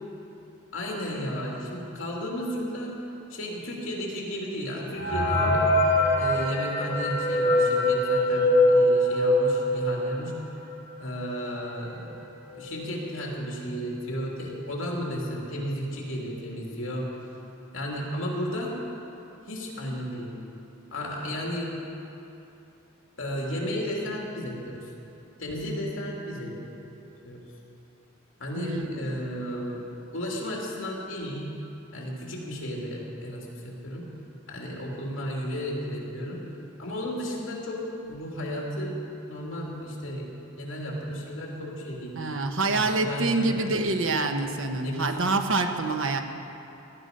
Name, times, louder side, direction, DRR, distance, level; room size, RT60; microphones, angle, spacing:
voice 1, 0.7-2.9 3.3-5.8 6.2-10.4 11.0-12.1 12.5-17.1 17.7-18.8 19.5-20.3 20.9-21.7 23.2-24.9 25.4-26.5 27.2-27.5 28.4-29.8 30.1-31.5 31.9-34.1 34.5-36.4 36.8-39.0 39.3-40.3 40.6-42.2 42.7-43.7 44.0-44.2 44.8-45.2, equal, 65° left, -2 dB, 2.8 m, -33 dB
sound 1, 5.0-10.4 10.8-10.9 11.1-11.3 12.0-12.1 12.5-12.8, left 1 dB, 50° left, 3.7 m, -23 dB
voice 2, 28.6-29.2 42.2-46.2, right 3 dB, 65° right, 5 dB, 1.1 m, -26 dB
18.0 x 12.0 x 5.3 m, 2.9 s
head